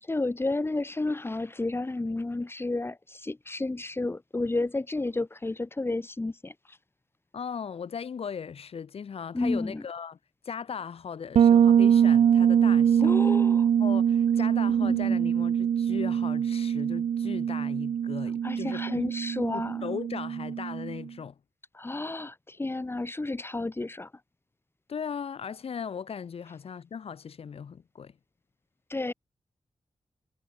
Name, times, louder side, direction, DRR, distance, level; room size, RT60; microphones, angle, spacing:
voice 1, 0.0-6.8 9.3-9.8 13.0-13.7 14.8-15.2 18.4-19.8 21.7-24.1 28.9-29.1, left 2 dB, 25° left, 2.7 m, -31 dB
voice 2, 7.3-10.2 10.4-13.4 13.8-19.0 19.5-21.4 24.9-28.2, left 6 dB, 85° left, 4.4 m, -38 dB
Bass guitar, 11.3-21.0, right 8 dB, 85° right, 0.5 m, -23 dB
wide cardioid pair, 105°, 10 cm